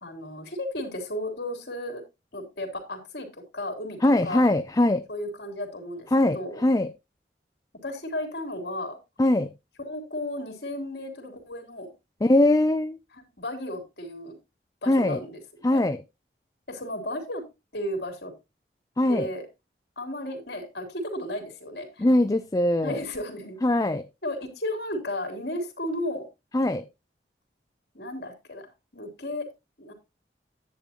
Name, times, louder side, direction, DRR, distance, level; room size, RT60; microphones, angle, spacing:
voice 1, 0.0-2.0 2.3-3.3 3.5-4.5 5.1-6.1 6.3-6.6 7.8-9.0 9.8-11.9 13.4-14.4 14.8-15.8 16.7-17.5 17.7-18.3 19.1-19.4 20.0-22.1 22.8-23.6 24.2-26.3 27.9-29.5 29.8-29.9, left 1 dB, 65° left, 5 dB, 3.2 m, -34 dB
voice 2, 4.0-5.0 6.1-6.9 9.2-9.5 12.2-13.0 14.9-15.2 15.6-16.0 19.0-19.3 22.0-23.0 23.6-24.1 26.5-26.8, left 1 dB, 20° left, 11 dB, 0.4 m, -21 dB
10.5 x 8.9 x 2.9 m, 0.24 s
head